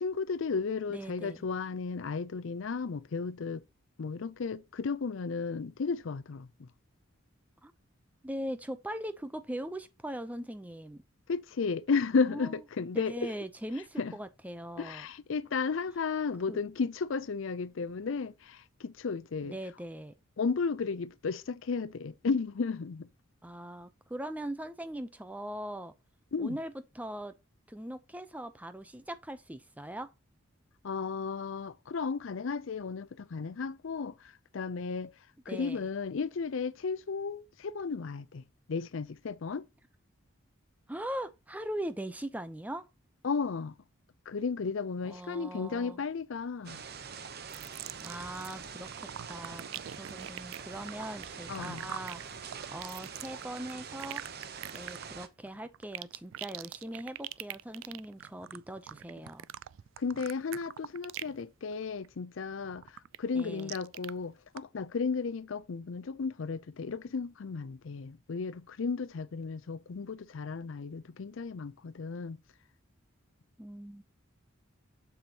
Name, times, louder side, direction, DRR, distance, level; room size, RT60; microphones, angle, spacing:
voice 1, 0.0-3.6 4.0-6.7 11.3-13.4 14.0-14.1 14.8-19.6 20.4-23.1 26.3-26.6 30.8-35.1 35.5-38.4 38.7-39.7 43.2-43.7 44.3-46.8 51.5-51.9 60.0-72.4, left 5 dB, 65° left, 0.5 m, -34 dB
voice 2, 0.9-1.4 7.6-7.7 8.2-11.0 12.2-12.5 12.9-15.1 16.5-16.6 19.4-20.1 23.4-25.9 26.4-27.3 27.7-30.1 35.5-35.8 40.9-42.9 45.0-46.0 48.0-49.6 49.9-54.2 54.7-59.5 63.3-63.7 73.6-74.0, right 1 dB, 5° right, 0.6 m, -40 dB
sound 1, 46.6-55.3, right 6 dB, 50° right, 0.8 m, -44 dB
sound 2, 47.5-48.6 48.8-61.4 61.7-62.1 62.5-64.1 64.6-64.7, right 12 dB, 70° right, 0.3 m, -43 dB
7.3 x 7.0 x 2.9 m
head